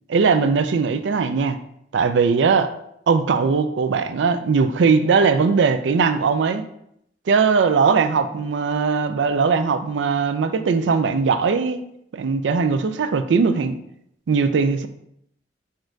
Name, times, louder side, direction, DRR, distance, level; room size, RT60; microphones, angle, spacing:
voice 1, 0.1-1.6 1.9-2.7 3.1-6.7 7.3-11.8 12.1-13.8 14.3-14.9, right 5 dB, 85° right, 10 dB, 0.4 m, -19 dB
4.3 x 2.6 x 4.5 m, 0.75 s
head